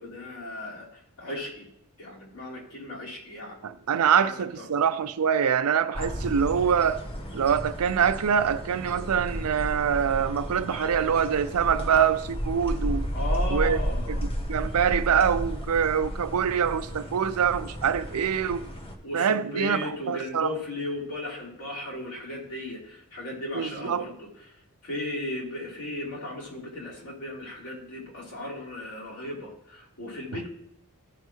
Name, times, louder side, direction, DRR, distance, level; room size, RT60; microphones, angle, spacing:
voice 1, 0.0-1.7 2.0-3.6 4.1-4.7 6.4-6.5 13.1-14.2 19.0-30.5, left 1 dB, 80° left, 3.4 m, -36 dB
voice 2, 3.6-7.0 7.3-13.1 13.5-13.8 14.1-14.2 14.5-18.7 19.1-20.5 23.5-24.1, right 7 dB, 80° right, 0.5 m, -24 dB
sound 1, 5.9-18.9, equal, 25° left, 1.1 m, -33 dB
15.0 x 5.5 x 3.0 m
head